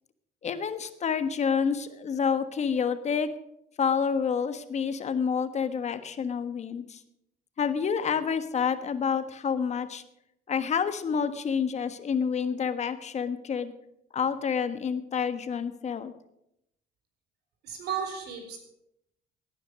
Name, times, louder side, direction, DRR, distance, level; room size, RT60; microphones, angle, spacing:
voice 1, 0.4-3.3 3.8-7.0 7.6-10.0 10.5-13.7 14.1-16.1, left 6 dB, 40° left, 10 dB, 1.4 m, -28 dB
voice 2, 17.6-18.6, right 7 dB, 75° right, 5 dB, 4.5 m, -34 dB
17.0 x 10.0 x 6.3 m, 0.81 s
cardioid pair, 110°, 17 cm